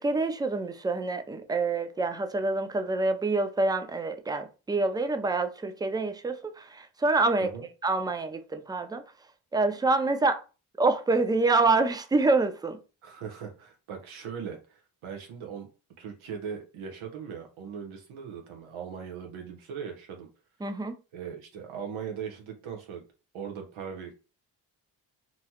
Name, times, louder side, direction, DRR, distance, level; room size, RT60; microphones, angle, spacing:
voice 1, 0.0-7.5 7.8-9.0 9.5-10.4 10.8-12.8 20.6-21.0, right 3 dB, 10° right, 0.3 m, -26 dB
voice 2, 13.0-15.7 16.0-20.3 21.1-23.0 23.3-24.1, right 7 dB, 80° right, 0.9 m, -39 dB
2.9 x 2.3 x 2.8 m
supercardioid pair, 45°, 48 cm